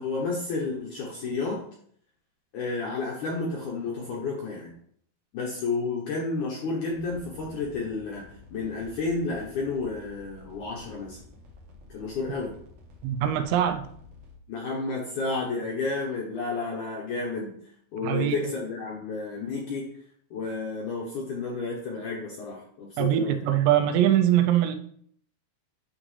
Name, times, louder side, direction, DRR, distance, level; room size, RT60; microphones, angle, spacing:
voice 1, 0.0-1.6 2.5-4.7 5.3-8.3 8.5-11.2 11.9-12.5 14.5-17.5 17.9-19.8 20.3-23.4, left 3 dB, 70° left, -2 dB, 1.9 m, -31 dB
sound 1, 6.9-14.4, left 2 dB, 60° right, 1.8 m, -51 dB
voice 2, 13.0-13.9 18.0-18.5 23.0-24.8, right 11 dB, 85° right, 7 dB, 2.9 m, -23 dB
9.6 x 6.2 x 3.2 m, 0.63 s
omnidirectional pair, 5.0 m